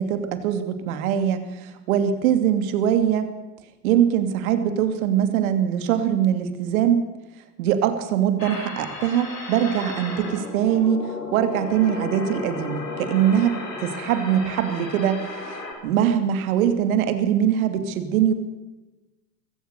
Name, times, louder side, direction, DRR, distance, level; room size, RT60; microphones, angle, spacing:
voice 1, 0.0-3.3 3.8-7.0 7.6-18.3, right 9 dB, 60° right, 9 dB, 2.9 m, -22 dB
sound 1, 8.4-15.7, left 3 dB, 85° left, 5.4 m, -34 dB
24.5 x 16.5 x 6.8 m, 1.1 s
figure-of-eight pair, 90°, 48 cm